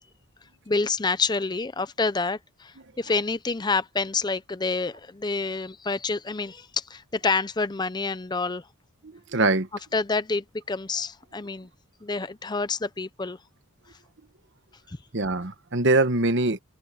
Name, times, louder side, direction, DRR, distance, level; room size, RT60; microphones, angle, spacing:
voice 1, 0.7-8.6 9.9-11.7 12.0-13.4 14.9-15.0, left 4 dB, 20° left, 0.5 m, -28 dB
voice 2, 9.0-9.7 15.1-16.6, right 2 dB, 55° right, 1.3 m, -23 dB
head